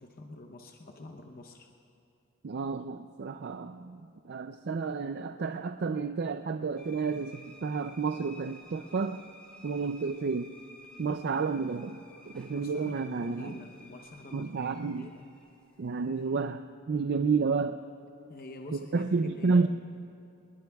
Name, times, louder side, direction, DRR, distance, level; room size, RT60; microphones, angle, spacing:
voice 1, 0.0-1.7 12.2-15.3 18.3-19.7, left 2 dB, 45° left, 3 dB, 0.8 m, -47 dB
voice 2, 2.4-4.0 4.3-9.2 9.6-10.5 11.0-13.6 14.3-15.1 15.8-17.8 18.7-19.7, right 4 dB, 50° right, 8 dB, 0.4 m, -31 dB
sound 1, 6.8-16.4, equal, 5° left, 3.3 m, -54 dB
26.5 x 21.0 x 2.3 m, 2.8 s
head